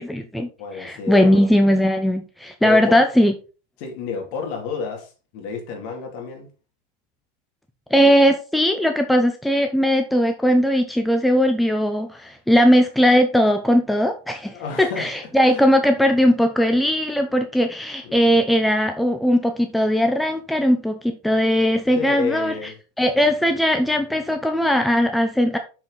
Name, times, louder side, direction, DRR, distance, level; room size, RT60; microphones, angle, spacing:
voice 1, 0.0-0.5 0.8-3.3 7.9-22.6 23.0-25.6, equal, ahead, 0.6 m, -19 dB
voice 2, 0.6-1.5 2.6-3.0 3.8-6.5 14.5-15.1 15.5-15.7 18.0-18.4 21.9-22.7, left 5 dB, 45° left, 2.7 m, -30 dB
6.3 x 6.2 x 4.0 m
supercardioid pair, 155°, 0 cm